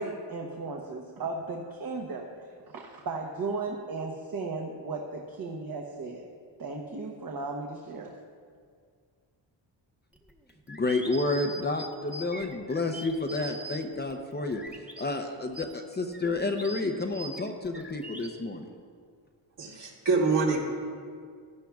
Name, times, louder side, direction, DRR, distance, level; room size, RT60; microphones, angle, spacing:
voice 1, 0.0-6.2 6.6-8.1, right 3 dB, 50° right, 0 dB, 1.0 m, -36 dB
sound 1, 10.1-15.0 15.5-18.3, right 1 dB, 5° right, 1.0 m, -43 dB
voice 2, 10.7-14.6 15.0-18.7, left 2 dB, 25° left, 4 dB, 0.6 m, -30 dB
voice 3, 19.6-20.6, right 4 dB, 65° right, -3 dB, 2.3 m, -25 dB
16.0 x 11.5 x 2.4 m, 2.1 s
cardioid pair, 120°, 45 cm